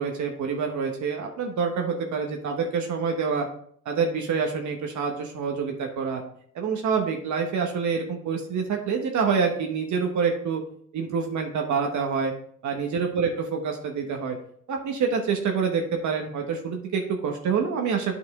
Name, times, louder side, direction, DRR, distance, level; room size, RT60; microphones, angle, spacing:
voice 1, 0.0-3.5 3.8-6.2 6.5-10.6 10.9-12.3 12.6-14.4 14.7-18.2, right 5 dB, 70° right, 2 dB, 1.2 m, -27 dB
9.1 x 5.1 x 3.6 m, 0.62 s
cardioid pair, 90°, 30 cm